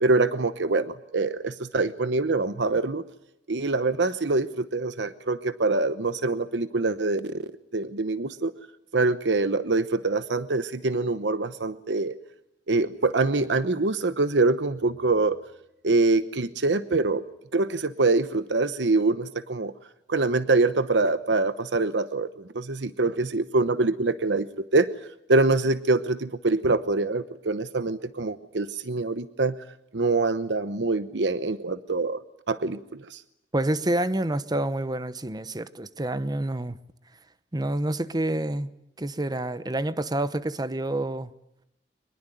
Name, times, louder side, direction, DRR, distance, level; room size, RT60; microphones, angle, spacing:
voice 1, 0.0-3.0 3.5-7.3 7.7-8.5 8.9-12.1 12.7-15.4 15.8-17.2 17.5-19.7 20.1-24.5 24.7-24.9 25.3-29.5 29.9-32.2 32.5-33.2, right 3 dB, 90° right, 1.0 m, -24 dB
voice 2, 33.5-36.8 37.5-38.7 39.0-41.3, right 1 dB, 25° right, 1.0 m, -28 dB
24.0 x 21.0 x 9.2 m
head